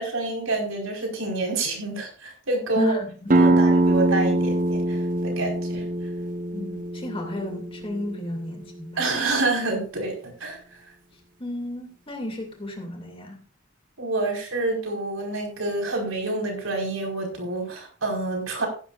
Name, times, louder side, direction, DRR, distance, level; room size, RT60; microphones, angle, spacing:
voice 1, 0.0-3.0 3.4-5.0 5.2-5.8 9.0-10.6 14.0-18.7, right 2 dB, 85° right, 1 dB, 5.0 m, -27 dB
voice 2, 2.7-3.6 6.5-9.0 11.4-13.4, equal, 25° left, 2 dB, 2.6 m, -33 dB
sound 1, 3.3-8.7, right 2 dB, 40° right, 0.9 m, -23 dB
15.0 x 11.5 x 2.5 m, 0.39 s
head